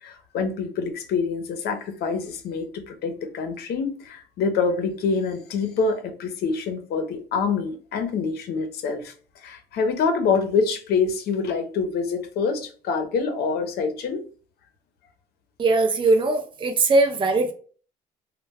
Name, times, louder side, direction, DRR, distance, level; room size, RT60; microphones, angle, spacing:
voice 1, 0.0-9.1 9.4-14.2, left 5 dB, 70° left, 7 dB, 0.7 m, -26 dB
voice 2, 15.6-17.5, right 3 dB, 30° right, 4 dB, 0.6 m, -20 dB
2.2 x 2.1 x 3.4 m, 0.41 s
cardioid pair, 110°, 17 cm